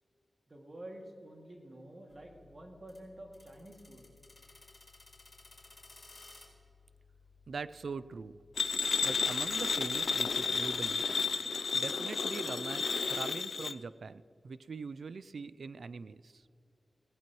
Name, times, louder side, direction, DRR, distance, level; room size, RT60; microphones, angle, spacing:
voice 1, 0.5-4.1, right 1 dB, 40° right, 1 dB, 2.3 m, -49 dB
sound 1, 2.1-10.9, left 3 dB, 35° left, 4.2 m, -58 dB
voice 2, 7.5-8.4 9.0-11.1 11.7-16.5, right 4 dB, 75° right, 16 dB, 0.4 m, -42 dB
sound 2, 8.6-13.7, left 5 dB, 70° left, 0.4 m, -32 dB
19.5 x 16.5 x 3.1 m, 2.5 s
wide cardioid pair, 95°, 0 cm